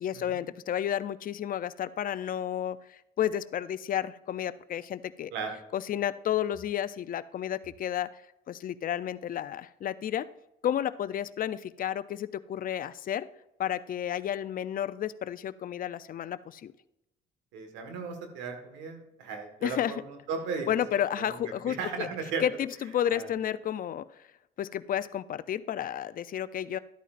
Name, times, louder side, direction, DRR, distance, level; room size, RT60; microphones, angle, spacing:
voice 1, 0.0-5.3 5.7-8.1 8.5-10.3 10.6-13.3 13.6-16.7 19.6-19.9 20.7-22.1 22.4-24.1 24.6-26.8, left 10 dB, 50° left, 16 dB, 0.5 m, -31 dB
voice 2, 17.5-20.7 21.2-21.4 21.6-22.4 23.1-23.3, right 5 dB, 90° right, 5 dB, 1.6 m, -36 dB
12.5 x 9.0 x 2.5 m, 0.85 s
supercardioid pair, 80°, 18 cm